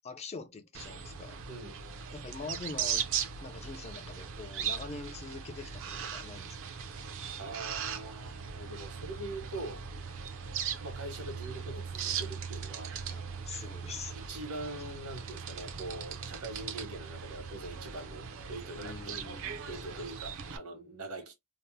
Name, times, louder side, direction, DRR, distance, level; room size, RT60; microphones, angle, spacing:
voice 1, 0.0-1.4 2.1-3.1 3.4-6.6 13.1-14.2 18.7-19.9, left 4 dB, 30° left, 0.5 m, -44 dB
sound 1, 0.7-20.6, right 7 dB, 60° right, 0.5 m, -39 dB
voice 2, 1.5-1.8 7.4-9.8 10.8-13.0 13.5-13.7 14.1-19.4 19.7-21.4, right 2 dB, 85° right, 1.1 m, -43 dB
2.8 x 2.0 x 3.1 m
head